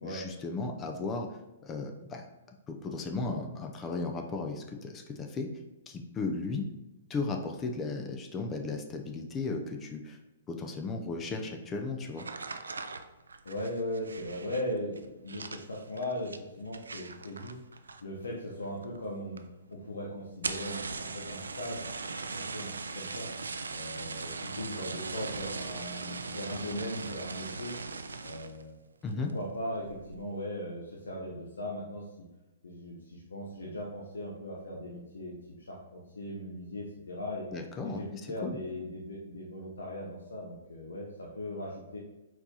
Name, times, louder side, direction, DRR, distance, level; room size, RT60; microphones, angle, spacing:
voice 1, 0.0-2.3 2.7-5.5 5.9-6.6 7.1-10.2 10.5-12.3 29.0-29.3 37.5-38.6, left 3 dB, 20° left, 3 dB, 0.5 m, -35 dB
sound 1, 12.1-18.3 18.5-19.1 19.4-19.5 19.7-19.8 20.3-28.6 29.1-29.4 29.8-30.2, right 4 dB, 85° right, 0.4 m, -39 dB
voice 2, 13.4-17.6 18.0-19.4 19.7-21.9 22.3-23.3 23.7-27.7 28.2-28.7 29.3-32.1 32.6-37.5 37.8-42.0, left 1 dB, 80° left, -3 dB, 0.8 m, -38 dB
4.3 x 4.1 x 2.8 m, 1.0 s
hypercardioid pair, 125°, 0 cm